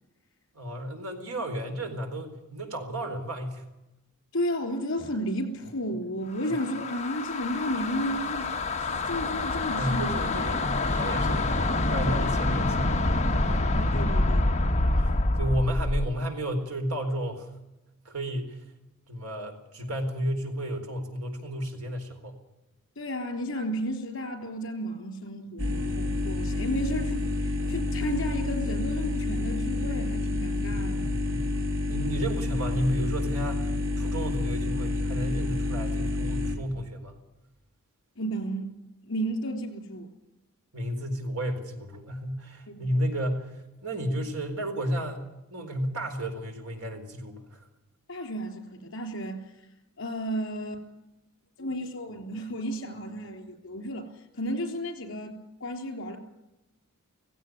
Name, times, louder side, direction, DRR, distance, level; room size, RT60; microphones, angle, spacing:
voice 1, 0.5-3.7 9.7-13.1 13.5-13.6 14.7-17.5 18.0-18.6 19.1-22.4 25.7-26.0 30.7-31.5 31.9-37.1 40.7-47.7, equal, 80° right, 4.3 m, -33 dB
voice 2, 4.3-10.4 13.7-14.5 23.0-31.1 38.2-38.7 39.1-40.1 42.7-43.0 48.1-49.7 50.0-50.8 51.6-56.2, equal, 55° left, 3.8 m, -33 dB
sound 1, 6.4-16.1, left 2 dB, 30° left, 1.2 m, -26 dB
sound 2, 25.6-36.6, left 2 dB, 60° right, 3.3 m, -29 dB
17.0 x 16.0 x 9.5 m
head